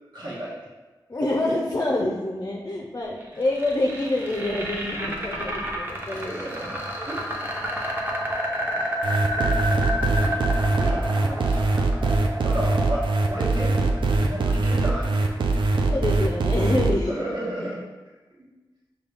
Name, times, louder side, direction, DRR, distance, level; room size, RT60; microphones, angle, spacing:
voice 1, 0.1-0.6 6.1-7.9 8.6-8.9 9.4-11.6 12.2-15.4 17.1-17.8 18.4-18.5, right 1 dB, 65° right, -5 dB, 1.2 m, -34 dB
voice 2, 1.1-6.3 15.8-17.3, left 1 dB, 35° left, 0 dB, 0.4 m, -26 dB
sound 1, 3.2-15.3, equal, 25° right, 0.7 m, -30 dB
sound 2, 9.0-16.9, right 3 dB, 85° right, 0.4 m, -22 dB
5.3 x 2.3 x 3.4 m, 1.2 s
wide cardioid pair, 85°, 8 cm